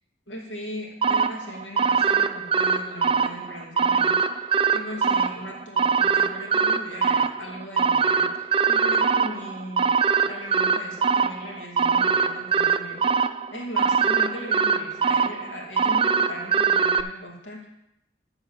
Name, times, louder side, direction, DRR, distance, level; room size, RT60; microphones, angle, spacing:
voice 1, 0.3-13.0 13.5-17.7, left 1 dB, 65° left, -1 dB, 2.3 m, -38 dB
sound 1, 1.0-17.0, right 6 dB, 30° right, 0.4 m, -23 dB
13.0 x 4.4 x 7.2 m, 0.83 s
head